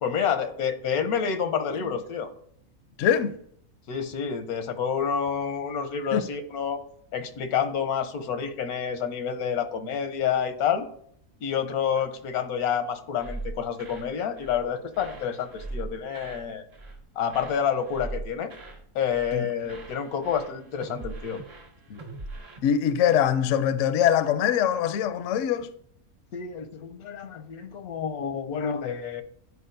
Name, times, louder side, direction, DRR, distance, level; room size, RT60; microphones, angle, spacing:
voice 1, 0.0-2.3 3.9-6.8 7.1-10.8 11.4-16.6 17.2-18.5 18.9-21.4 26.3-29.2, left 7 dB, 85° left, 1.3 m, -28 dB
voice 2, 3.0-3.4 6.1-6.2 19.3-19.5 21.9-22.0 22.6-25.7, left 9 dB, 70° left, 0.8 m, -23 dB
sound 1, 13.2-14.1 14.4-14.7 14.9-16.5 16.7-17.0 17.3-18.8 19.1-19.4 19.6-22.6, right 2 dB, 50° right, 1.6 m, -40 dB
11.0 x 4.7 x 2.6 m
omnidirectional pair, 1.5 m